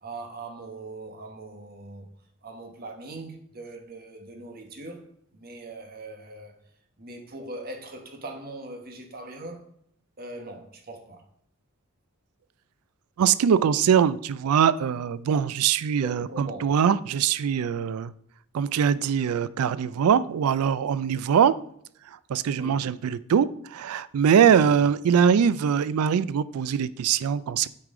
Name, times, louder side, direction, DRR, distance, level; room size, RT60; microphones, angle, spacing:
voice 1, 0.0-2.1 2.4-5.0 5.3-6.6 7.0-9.7 10.2-11.2 16.0-16.7 22.5-23.0 24.5-24.8, right 2 dB, 45° right, 1.2 m, -40 dB
voice 2, 13.2-18.1 18.5-21.5 22.3-27.7, right 7 dB, 85° right, 0.3 m, -22 dB
8.4 x 4.8 x 3.7 m
head